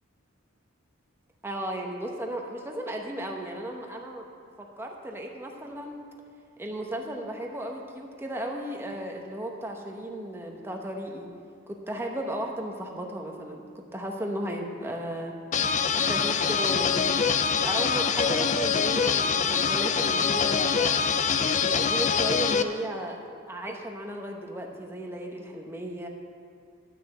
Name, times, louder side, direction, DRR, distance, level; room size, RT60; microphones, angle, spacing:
voice 1, 1.4-4.3 4.8-6.0 6.6-11.3 11.7-15.3 15.9-17.2 17.6-21.0 21.6-23.2 23.5-26.1, right 1 dB, 10° right, 1 dB, 0.9 m, -35 dB
sound 1, 15.5-22.6, left 6 dB, 35° left, 0.4 m, -24 dB
12.0 x 6.0 x 7.8 m, 2.3 s
head